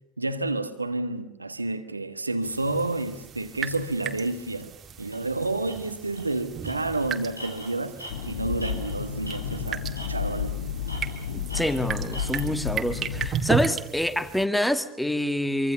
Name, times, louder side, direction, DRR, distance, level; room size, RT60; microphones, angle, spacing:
voice 1, 0.2-4.7 5.0-8.0 8.3-10.6, right 2 dB, 85° right, 1.3 m, -30 dB
sound 1, 2.4-14.4, right 7 dB, 35° right, 2.0 m, -35 dB
Tools, 5.1-5.2 5.6-5.8 6.1-6.3 6.6-9.7 10.0-10.5 10.9-12.5, right 1 dB, 90° left, 4.5 m, -42 dB
sound 2, 8.1-13.3, left 7 dB, 65° left, 1.3 m, -32 dB
voice 2, 11.3-15.7, left 1 dB, 5° left, 1.7 m, -26 dB
25.5 x 25.0 x 6.9 m
figure-of-eight pair, 70°, 0 cm